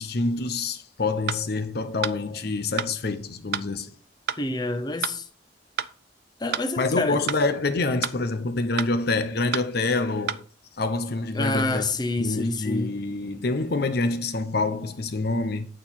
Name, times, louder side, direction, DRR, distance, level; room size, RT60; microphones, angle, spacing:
voice 1, 0.0-3.9 6.8-10.4 10.8-11.9 12.2-15.7, left 3 dB, 60° left, 0.8 m, -26 dB
sound 1, 1.3-1.4 2.0-2.2 2.8-2.9 3.5-3.7 4.3-4.4 5.0-5.2 5.8-5.9 6.5-6.7 7.3-7.4 8.0-8.2 8.8-8.9 9.5-9.7 10.3-10.4, right 8 dB, 60° right, 0.5 m, -29 dB
voice 2, 4.4-5.3 6.4-7.2 11.3-13.0, left 2 dB, 25° left, 0.8 m, -27 dB
9.1 x 4.5 x 5.8 m
head